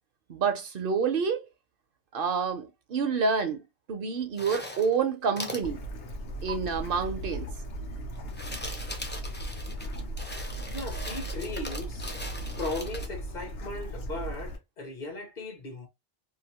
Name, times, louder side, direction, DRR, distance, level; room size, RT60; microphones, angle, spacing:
voice 1, 0.3-1.5 2.1-3.6 3.9-5.8 6.4-7.5, right 5 dB, 65° right, 0.7 m, -28 dB
sound 1, 4.3-5.0 5.4-5.7 6.5-6.6 8.1-13.1, left 1 dB, 15° left, 0.3 m, -40 dB
Bird / Stream, 5.6-14.6, right 1 dB, 75° left, 1.0 m, -37 dB
voice 2, 10.7-12.1 12.6-15.9, left 2 dB, 50° left, 0.9 m, -37 dB
2.7 x 2.5 x 2.9 m
omnidirectional pair, 1.0 m